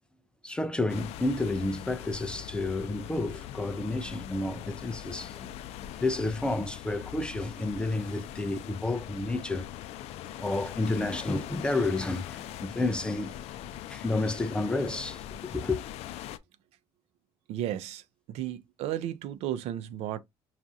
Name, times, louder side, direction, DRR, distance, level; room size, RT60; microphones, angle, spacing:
voice 1, 0.4-5.5 5.8-9.7 10.3-13.4 13.9-15.8, left 2 dB, 10° left, 0.3 m, -30 dB
sound 1, 0.9-16.4, left 12 dB, 70° left, 0.4 m, -42 dB
voice 2, 17.5-18.0 18.3-20.2, right 12 dB, 70° right, 0.5 m, -33 dB
5.9 x 2.4 x 2.6 m
cardioid pair, 150°, 11 cm